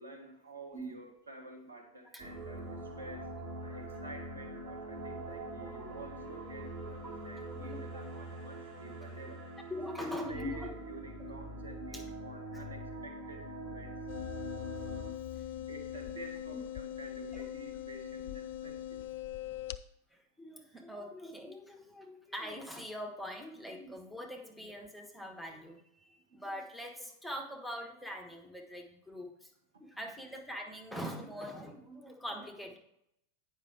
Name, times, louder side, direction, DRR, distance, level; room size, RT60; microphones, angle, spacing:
voice 1, 0.0-9.4 10.0-14.0 15.7-19.0, right 2 dB, 75° right, 2 dB, 1.7 m, -49 dB
sound 1, 2.2-15.1, right 1 dB, 35° right, 3.0 m, -44 dB
voice 2, 7.5-8.0 9.7-10.7 11.9-12.0 15.3-15.5 16.5-16.6 17.2-17.5 20.4-29.5 29.8-32.8, equal, ahead, 1 dB, 1.3 m, -43 dB
sound 2, 14.1-19.8, left 12 dB, 55° left, 0.4 m, -41 dB
9.2 x 5.6 x 4.7 m, 0.76 s
figure-of-eight pair, 90°, 0 cm